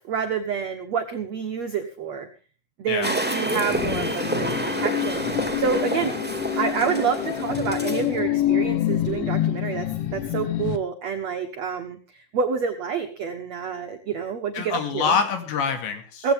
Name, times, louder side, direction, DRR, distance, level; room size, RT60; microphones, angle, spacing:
voice 1, 0.0-2.3 2.8-5.2 5.6-6.1 6.6-9.9 10.1-15.2 16.2-16.3, right 6 dB, 85° right, 7 dB, 1.5 m, -28 dB
sound 1, 3.0-8.1, right 1 dB, 5° right, 0.7 m, -29 dB
sound 2, 3.5-10.8, left 12 dB, 90° left, 3.8 m, -27 dB
voice 2, 14.5-16.3, left 6 dB, 70° left, 6 dB, 4.5 m, -25 dB
18.0 x 15.5 x 3.6 m, 0.38 s
omnidirectional pair, 5.3 m